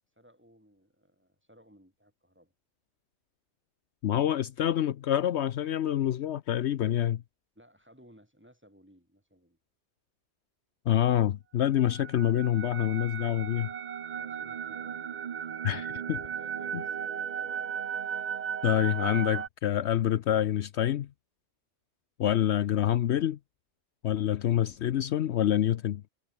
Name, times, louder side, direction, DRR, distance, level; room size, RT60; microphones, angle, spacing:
voice 1, 0.2-2.5 7.6-9.6 14.1-17.8, equal, 10° right, 5.4 m, -59 dB
voice 2, 4.0-7.2 10.9-13.7 15.6-16.2 18.6-21.1 22.2-23.4 24.0-26.0, left 11 dB, 70° left, 0.9 m, -27 dB
sound 1, 11.8-19.5, right 8 dB, 45° right, 0.6 m, -36 dB
omnidirectional pair, 1.2 m